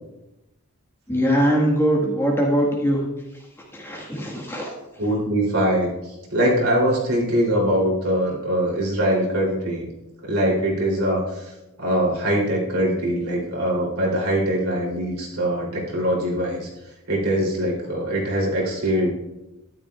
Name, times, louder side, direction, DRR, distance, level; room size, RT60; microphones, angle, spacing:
voice 1, 1.1-3.0 3.7-4.7, equal, 10° left, -2 dB, 1.6 m, -21 dB
voice 2, 5.0-5.9 6.3-9.9 10.2-11.5 11.8-16.7 17.1-19.1, right 1 dB, 75° right, -3 dB, 3.1 m, -22 dB
12.5 x 11.0 x 2.4 m, 0.99 s
head